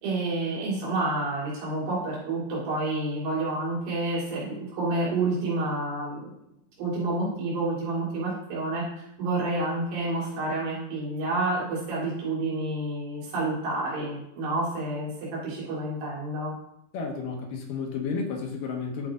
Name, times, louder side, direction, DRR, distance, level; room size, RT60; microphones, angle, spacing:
voice 1, 0.0-6.3 6.8-8.8 9.2-15.1 15.4-16.5, right 2 dB, 90° right, -7 dB, 5.4 m, -29 dB
voice 2, 16.9-19.1, left 5 dB, 70° left, 2 dB, 2.4 m, -32 dB
13.5 x 4.8 x 3.7 m, 0.77 s
omnidirectional pair, 4.6 m